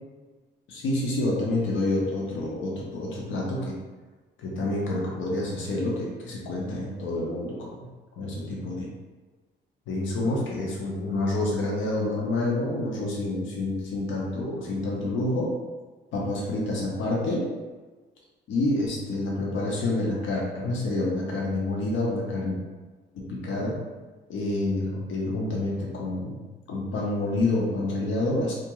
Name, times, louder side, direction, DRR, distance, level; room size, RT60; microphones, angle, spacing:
voice 1, 0.7-3.7 4.4-7.9 8.2-8.9 9.9-15.5 16.1-17.5 18.5-22.6 23.1-23.8 24.3-26.4 26.7-28.5, left 2 dB, 75° left, -3 dB, 0.7 m, -28 dB
2.6 x 2.4 x 3.0 m, 1.3 s
cardioid pair, 90°, 20 cm